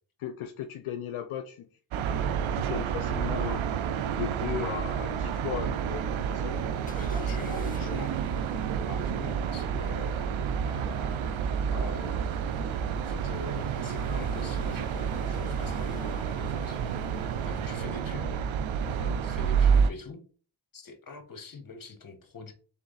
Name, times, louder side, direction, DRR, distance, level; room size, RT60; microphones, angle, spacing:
voice 1, 0.2-1.7 2.5-3.6 4.0-6.7 18.8-19.2, left 10 dB, 75° left, 8 dB, 0.5 m, -37 dB
sound 1, 1.9-19.9, right 7 dB, 70° right, 0.5 m, -29 dB
sound 2, 5.9-17.8, left 4 dB, 20° left, 0.3 m, -47 dB
voice 2, 6.9-8.1 8.4-12.3 13.0-18.4 19.2-20.2 20.7-22.5, left 4 dB, 40° left, 7 dB, 1.1 m, -44 dB
3.6 x 3.2 x 3.9 m, 0.40 s
cardioid pair, 75°, 49 cm